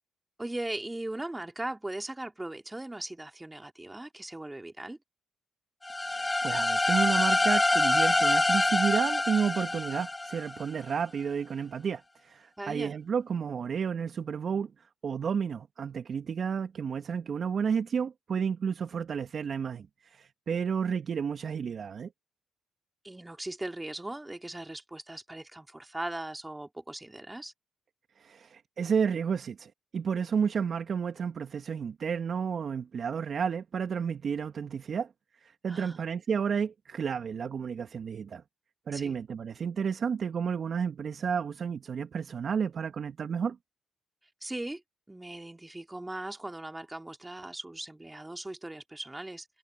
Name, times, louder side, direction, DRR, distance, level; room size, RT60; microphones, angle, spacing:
voice 1, 0.4-5.0 12.6-13.0 23.0-27.5 35.7-36.1 38.9-39.2 44.4-44.8 45.1-49.5, right 1 dB, 15° right, 3.1 m, -39 dB
sound 1, 5.8-10.7, left 2 dB, 20° left, 2.0 m, -26 dB
voice 2, 6.0-14.7 15.0-22.1 28.2-35.1 35.4-38.4 38.9-43.6, right 6 dB, 55° right, 2.1 m, -31 dB
supercardioid pair, 60°, 0 cm